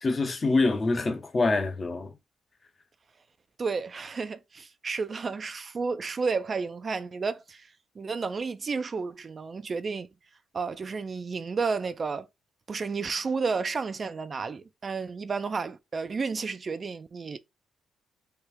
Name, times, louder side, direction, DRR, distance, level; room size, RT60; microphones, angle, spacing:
voice 1, 0.0-2.1, left 3 dB, 30° left, 0.6 m, -25 dB
voice 2, 3.6-7.7 8.0-10.1 10.5-12.3 12.7-17.4, right 4 dB, 40° right, 0.4 m, -31 dB
3.4 x 2.4 x 4.5 m
cardioid pair, 90°, 0 cm